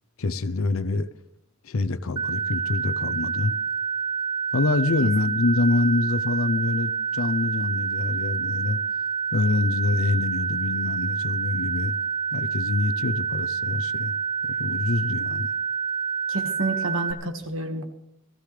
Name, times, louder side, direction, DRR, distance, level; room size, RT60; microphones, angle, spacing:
voice 1, 0.2-1.1 1.6-3.5 4.5-8.8 9.3-11.9 12.3-14.1 14.5-15.5, left 3 dB, 80° left, 15 dB, 0.7 m, -25 dB
sound 1, 2.2-17.1, right 5 dB, 20° right, 0.6 m, -28 dB
voice 2, 16.3-17.9, right 2 dB, 65° right, 6 dB, 1.7 m, -29 dB
19.0 x 13.5 x 3.3 m, 0.75 s
head